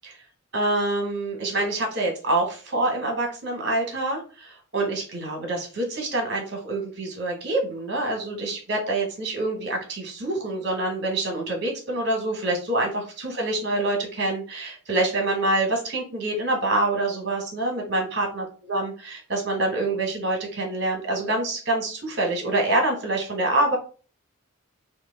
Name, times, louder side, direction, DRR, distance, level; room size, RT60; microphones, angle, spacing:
voice 1, 0.5-23.8, right 2 dB, 50° right, 1 dB, 1.1 m, -26 dB
3.0 x 2.2 x 3.4 m, 0.37 s
head